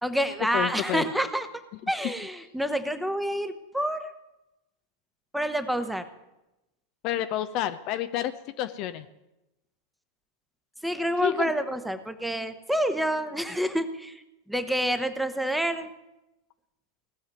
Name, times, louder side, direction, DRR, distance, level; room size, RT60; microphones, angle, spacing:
voice 1, 0.0-1.5 1.9-4.1 5.3-6.0 10.8-14.2 14.5-15.9, equal, ahead, 9 dB, 1.1 m, -28 dB
voice 2, 0.5-1.0 7.0-9.1 11.2-11.5, left 12 dB, 40° left, 10 dB, 0.7 m, -29 dB
18.0 x 7.3 x 9.5 m, 0.97 s
figure-of-eight pair, 90°, 0 cm